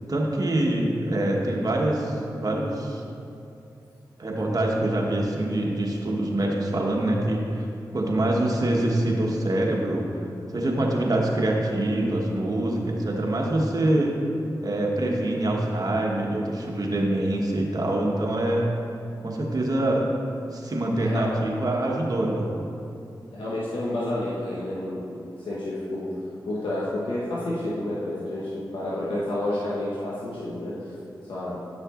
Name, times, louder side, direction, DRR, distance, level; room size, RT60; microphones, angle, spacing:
voice 1, 0.1-3.0 4.2-7.7 7.9-10.0 10.5-14.2 14.6-18.7 19.2-20.1 20.5-22.5, right 1 dB, 50° right, -1 dB, 1.2 m, -25 dB
voice 2, 21.0-21.3 23.3-26.1 26.4-30.9 31.3-31.6, left 1 dB, 85° left, -8 dB, 1.0 m, -30 dB
9.8 x 6.4 x 2.5 m, 2.6 s
cardioid pair, 40°, 8 cm